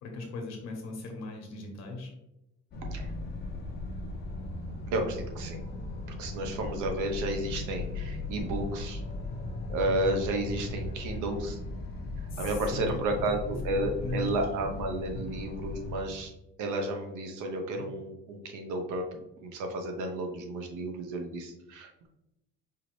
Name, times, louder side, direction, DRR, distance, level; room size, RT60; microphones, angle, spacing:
voice 1, 0.0-2.1 12.3-14.3 15.3-15.4 17.7-17.8, left 3 dB, 60° left, 2 dB, 1.1 m, -39 dB
sound 1, 2.7-16.0, left 2 dB, 35° left, 0.6 m, -37 dB
voice 2, 4.9-5.6 6.2-9.0 9.7-11.6 12.4-16.3 16.6-21.9, right 1 dB, 80° right, 3 dB, 0.9 m, -32 dB
4.8 x 2.7 x 3.1 m, 0.86 s
cardioid pair, 160°, 30 cm